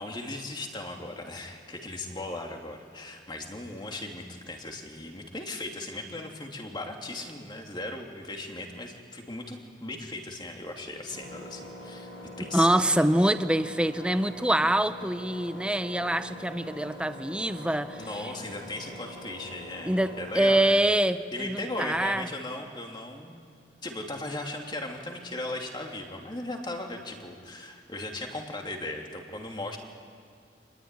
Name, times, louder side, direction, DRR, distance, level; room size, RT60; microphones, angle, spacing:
voice 1, 0.0-12.1 12.4-12.9 18.0-20.8 21.3-23.4 23.8-29.8, left 2 dB, 25° left, 2 dB, 2.9 m, -37 dB
Engine, 11.1-20.4, left 1 dB, 80° left, 7.1 m, -44 dB
voice 2, 12.5-18.1 19.9-22.3, right 1 dB, 5° right, 11 dB, 0.8 m, -25 dB
27.0 x 21.5 x 9.9 m, 2.2 s
head